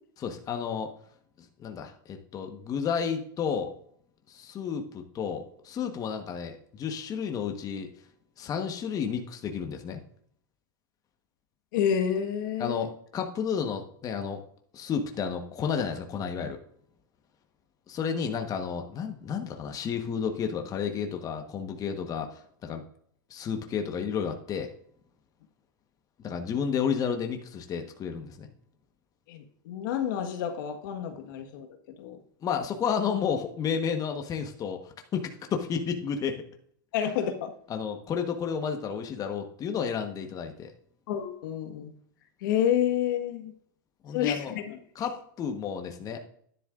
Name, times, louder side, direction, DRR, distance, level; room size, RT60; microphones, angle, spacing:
voice 1, 0.2-0.9 1.4-3.7 4.3-7.9 8.4-10.0 12.6-14.4 14.7-16.6 17.9-22.8 23.3-24.7 26.2-28.5 32.4-36.3 37.7-40.7 44.0-44.5 44.9-46.2, left 7 dB, 35° left, 4 dB, 1.3 m, -31 dB
voice 2, 11.7-12.9 29.3-31.7 32.0-32.2 36.9-37.5 41.1-41.9 42.4-43.5 44.1-44.8, left 9 dB, 70° left, 6 dB, 1.5 m, -29 dB
11.5 x 10.5 x 2.5 m, 0.64 s
hypercardioid pair, 110°, 11 cm